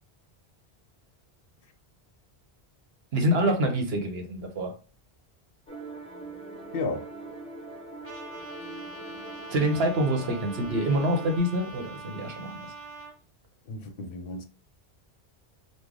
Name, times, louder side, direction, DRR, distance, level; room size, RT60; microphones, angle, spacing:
voice 1, 3.1-4.7 9.5-12.7, right 1 dB, 75° right, 1.0 m, -26 dB
sound 1, 5.7-11.4, right 3 dB, 5° left, 0.7 m, -41 dB
voice 2, 6.7-7.1 13.7-14.4, left 3 dB, 65° left, 0.7 m, -33 dB
Trumpet, 8.0-13.1, right 3 dB, 35° right, 0.5 m, -43 dB
3.1 x 2.2 x 3.7 m
omnidirectional pair, 1.1 m